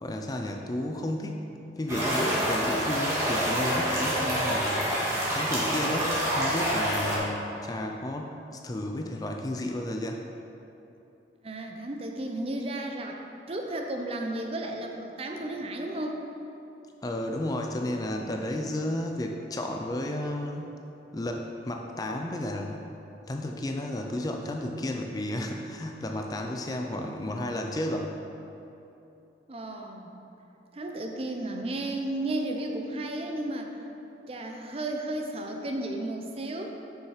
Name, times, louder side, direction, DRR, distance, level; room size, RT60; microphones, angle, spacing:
voice 1, 0.0-1.4 1.8-4.9 5.3-10.2 17.0-20.7 21.1-22.9 23.3-28.1, left 1 dB, 20° left, 2 dB, 0.3 m, -32 dB
sound 1, 1.9-7.2, equal, 15° right, 1.5 m, -27 dB
voice 2, 11.4-13.2 13.5-16.3 29.5-30.1 30.7-33.7 34.3-36.7, right 1 dB, 35° right, 3 dB, 0.5 m, -33 dB
6.4 x 5.4 x 4.8 m, 3.0 s
head